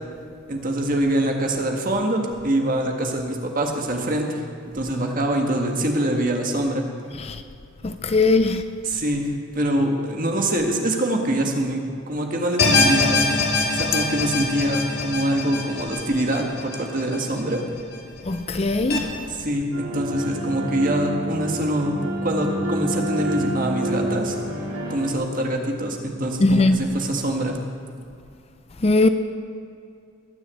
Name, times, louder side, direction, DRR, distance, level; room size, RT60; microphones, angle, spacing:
voice 1, 0.5-4.4 4.7-6.8 8.8-11.8 12.1-13.3 13.7-17.6 19.3-22.0 22.2-24.3 24.9-27.6, right 1 dB, 40° right, 1.7 m, -24 dB
voice 2, 7.8-8.6 18.3-19.0 26.4-26.8 28.8-29.1, left 2 dB, 25° left, 0.4 m, -19 dB
sound 1, 12.6-17.8 18.2-18.3 18.9-19.0, left 3 dB, 45° left, 2.0 m, -23 dB
sound 2, 19.7-25.1, right 1 dB, 90° right, 3.6 m, -28 dB
20.5 x 7.0 x 8.3 m
head